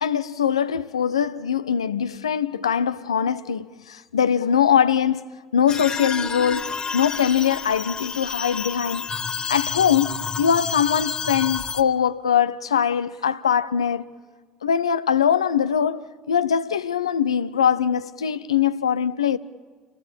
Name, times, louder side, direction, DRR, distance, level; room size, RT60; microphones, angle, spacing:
voice 1, 0.0-5.2 5.5-9.1 9.5-14.1 14.6-19.4, left 8 dB, 90° left, 0.6 m, -22 dB
sound 1, 5.7-11.8, left 5 dB, 30° left, 1.4 m, -30 dB
28.5 x 17.5 x 8.8 m
hypercardioid pair, 60°, 3 cm